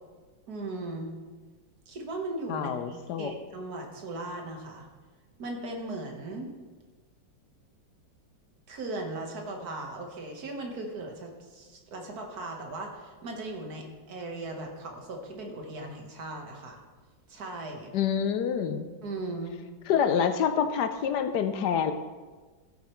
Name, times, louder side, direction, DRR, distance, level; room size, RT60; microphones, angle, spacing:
voice 1, 0.5-1.1 1.9-4.9 5.4-6.5 8.7-16.8 17.3-17.9 19.0-19.6, right 2 dB, 55° right, 2 dB, 1.7 m, -38 dB
voice 2, 2.5-3.3 17.9-18.9 19.9-21.9, left 8 dB, 70° left, 9 dB, 1.2 m, -27 dB
14.0 x 8.2 x 3.1 m, 1.4 s
omnidirectional pair, 2.0 m